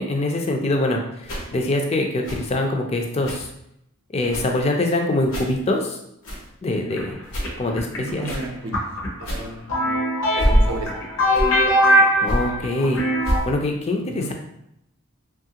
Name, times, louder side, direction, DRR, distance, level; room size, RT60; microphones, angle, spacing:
voice 1, 0.0-3.5 4.1-6.0 6.6-7.2 7.6-8.3 11.9-13.0 13.5-14.3, left 2 dB, 30° left, 2 dB, 0.3 m, -24 dB
sound 1, 1.2-1.5 2.2-2.5 3.2-3.5 4.2-4.6 5.2-5.6 6.2-6.5 7.2-7.5 8.2-8.5 9.2-9.5 10.2-10.8 11.2-11.6 12.2-12.5 13.2-13.5, equal, 90° left, 0.9 m, -25 dB
sound 2, 7.0-13.4, equal, 65° left, 0.7 m, -21 dB
voice 2, 8.0-8.8 9.2-10.1 10.4-11.0 14.1-14.3, right 2 dB, 75° right, 3 dB, 0.5 m, -34 dB
3.1 x 2.4 x 2.8 m, 0.77 s
head